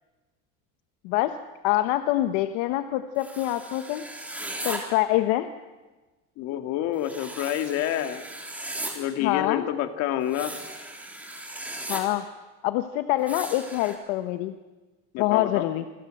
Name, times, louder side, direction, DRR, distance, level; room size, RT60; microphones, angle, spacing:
voice 1, 1.0-1.4 1.6-4.1 4.6-5.5 9.2-9.7 11.9-12.2 12.6-14.5 15.2-15.9, left 15 dB, 75° left, 9 dB, 1.3 m, -25 dB
sound 1, 3.2-4.8 7.0-8.9 10.3-12.0 13.3-14.0, right 1 dB, 5° right, 3.6 m, -37 dB
voice 2, 6.4-8.2 8.9-10.5 15.1-15.7, left 12 dB, 55° left, 8 dB, 2.3 m, -28 dB
27.5 x 25.0 x 7.8 m, 1.2 s
cardioid pair, 170°, 31 cm